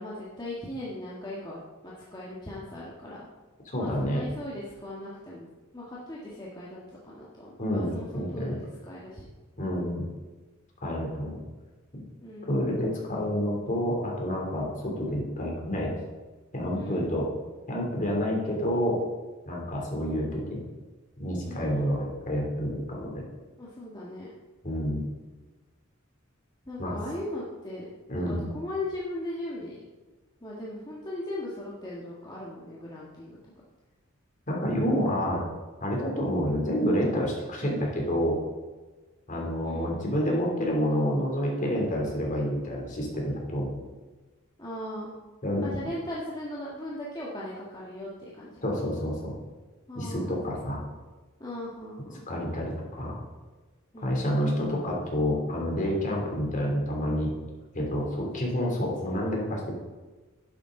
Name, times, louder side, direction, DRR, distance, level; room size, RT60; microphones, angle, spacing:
voice 1, 0.0-1.6 1.8-3.2 3.7-8.6 8.9-9.3 12.2-12.5 16.7-17.1 21.4-21.9 23.6-24.3 26.6-27.8 28.1-29.8 30.4-33.4 39.6-39.9 44.6-45.1 45.6-48.1 48.4-48.6 49.9-50.4 51.4-52.3 53.9-54.4, left 1 dB, 20° left, -6 dB, 1.7 m, -38 dB
voice 2, 3.7-4.2 7.6-8.6 9.6-10.0 10.8-11.4 12.4-15.9 16.5-17.3 17.7-19.0 19.5-20.6 21.2-23.2 24.6-25.0 26.8-27.0 28.1-28.4 34.5-35.4 35.8-38.4 39.3-43.8 45.4-45.6 48.6-49.3 49.9-50.8 52.3-53.2 54.0-57.3 57.7-59.8, equal, 40° left, -1 dB, 3.2 m, -28 dB
12.0 x 10.5 x 3.9 m, 1.3 s
head